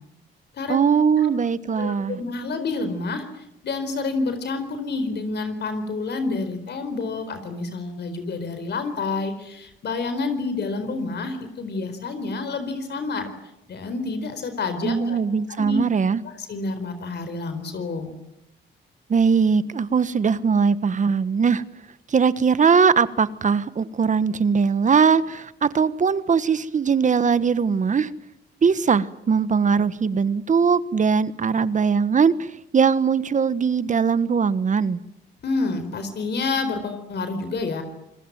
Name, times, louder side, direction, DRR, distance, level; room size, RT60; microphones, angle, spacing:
voice 1, 0.7-2.2 14.8-16.2 19.1-21.6 22.1-28.1 28.6-32.5 32.7-35.0, right 6 dB, 40° right, 15 dB, 1.4 m, -20 dB
voice 2, 1.8-13.3 13.7-15.2 15.6-15.8 16.2-18.2 35.4-37.8, left 3 dB, 60° left, 9 dB, 4.4 m, -28 dB
26.5 x 20.0 x 9.3 m, 0.85 s
cardioid pair, 90°, 20 cm